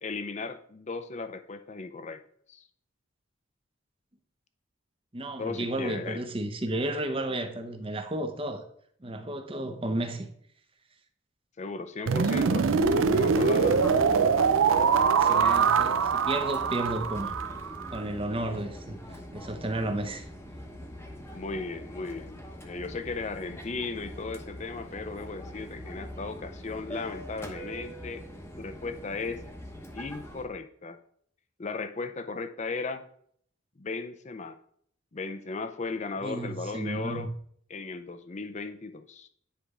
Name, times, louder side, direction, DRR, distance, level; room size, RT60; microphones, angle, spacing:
voice 1, 0.0-2.2 2.5-2.6 5.4-6.2 11.6-13.9 21.3-28.2 28.6-29.4 29.9-31.0 31.6-33.0 33.8-34.6 35.1-37.3 37.7-39.3, left 3 dB, 35° left, 0.5 m, -36 dB
voice 2, 5.1-8.6 9.0-10.3 15.2-17.3 17.9-20.2 36.2-37.3, right 1 dB, 25° right, 0.8 m, -33 dB
sound 1, 12.1-18.0, right 5 dB, 75° right, 0.5 m, -23 dB
Fixed-wing aircraft airplane, 13.6-30.5, equal, 10° left, 0.9 m, -43 dB
10.0 x 3.5 x 4.9 m
head